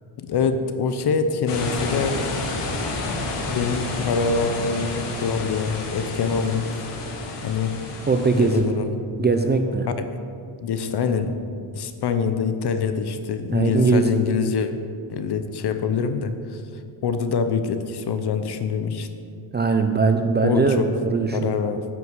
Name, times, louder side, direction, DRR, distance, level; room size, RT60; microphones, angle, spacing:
voice 1, 0.2-2.2 3.5-6.6 7.4-7.7 8.4-9.3 10.0-10.2 10.6-11.3 11.7-14.7 15.1-16.6 17.0-19.1 20.4-20.9 21.3-21.9, left 5 dB, 50° left, 9 dB, 0.8 m, -25 dB
sound 1, 1.5-8.6, left 3 dB, 85° left, 2.0 m, -30 dB
voice 2, 8.1-8.6 9.2-9.9 13.5-14.2 19.5-21.4, right 4 dB, 20° right, 6 dB, 0.4 m, -20 dB
9.3 x 5.8 x 8.0 m, 2.4 s
cardioid pair, 135°, 50 cm